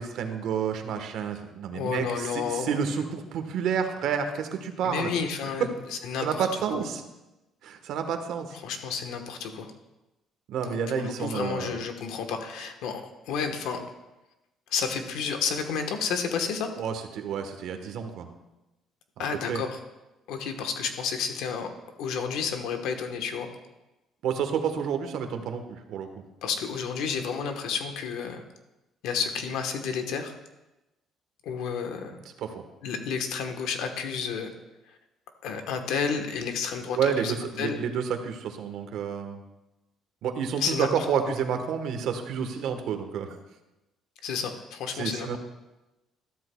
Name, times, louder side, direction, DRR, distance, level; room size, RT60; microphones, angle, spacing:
voice 1, 0.0-5.1 6.2-7.0 7.6-8.6 10.5-11.7 16.8-18.3 19.2-19.6 24.2-26.1 32.4-32.6 37.0-39.4 40.2-43.4 44.9-45.4, right 7 dB, 75° right, 7 dB, 1.2 m, -30 dB
voice 2, 1.7-2.8 4.8-5.7 6.0-6.5 6.7-6.8 8.6-9.7 10.6-13.8 14.7-16.8 19.2-19.8 20.3-21.7 22.0-23.5 26.4-28.4 29.0-30.3 31.4-32.2 32.8-34.5 34.9-35.0 35.4-37.8 40.6-41.3 44.2-45.4, left 6 dB, 85° left, 6 dB, 1.2 m, -31 dB
13.5 x 12.5 x 2.3 m, 1.0 s
cardioid pair, 105°, 0 cm